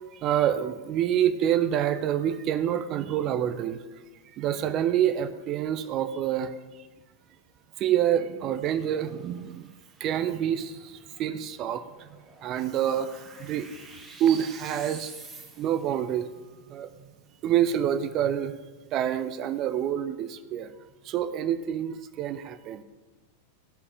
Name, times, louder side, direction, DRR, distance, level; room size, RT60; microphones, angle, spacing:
voice 1, 0.1-3.8 4.4-6.5 7.8-9.7 10.0-12.1 12.4-13.8 14.2-15.1 15.6-16.3 16.7-16.9 17.4-18.5 18.9-20.7 21.0-22.8, right 10 dB, 35° right, 11 dB, 0.6 m, -27 dB
sound 1, 8.6-16.0, right 3 dB, 15° right, 2.0 m, -51 dB
15.0 x 5.5 x 3.4 m, 1.2 s
figure-of-eight pair, 90°, 0 cm